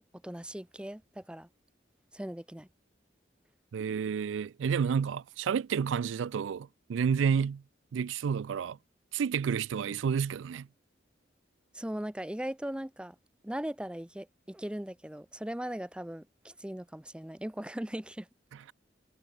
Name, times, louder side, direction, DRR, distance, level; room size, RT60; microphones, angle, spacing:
voice 1, 0.0-1.5 2.1-2.7 11.7-13.2 13.4-18.3, right 1 dB, 5° right, 0.5 m, -39 dB
voice 2, 3.7-7.6 7.9-8.8 9.1-10.7, right 6 dB, 85° right, 0.4 m, -30 dB
head